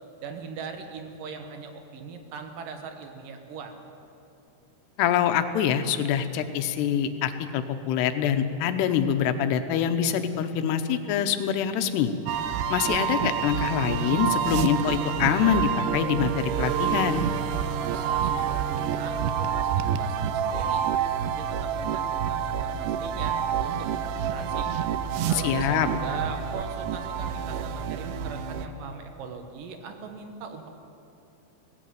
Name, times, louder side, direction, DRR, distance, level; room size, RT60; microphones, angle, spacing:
voice 1, 0.2-3.7 17.9-20.8 21.2-24.7 25.3-30.7, right 5 dB, 65° right, 6 dB, 2.7 m, -40 dB
voice 2, 5.0-12.1 12.7-17.3 25.3-25.9, left 8 dB, 80° left, 9 dB, 3.0 m, -25 dB
sound 1, 12.3-28.7, right 8 dB, 90° right, 3.0 m, -28 dB
18.0 x 15.5 x 9.3 m, 2.7 s
omnidirectional pair, 4.8 m